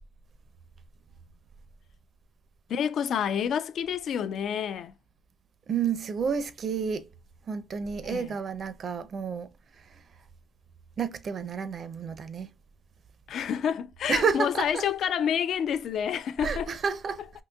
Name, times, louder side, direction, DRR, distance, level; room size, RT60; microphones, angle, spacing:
voice 1, 2.7-4.9 8.0-8.3 13.3-16.7, left 8 dB, 70° left, 0.3 m, -28 dB
voice 2, 5.7-7.1 7.5-9.5 9.8-10.0 11.0-12.5 14.1-14.8 16.4-17.2, right 6 dB, 50° right, 0.4 m, -30 dB
3.8 x 2.7 x 2.2 m
cardioid pair, 90°, 0 cm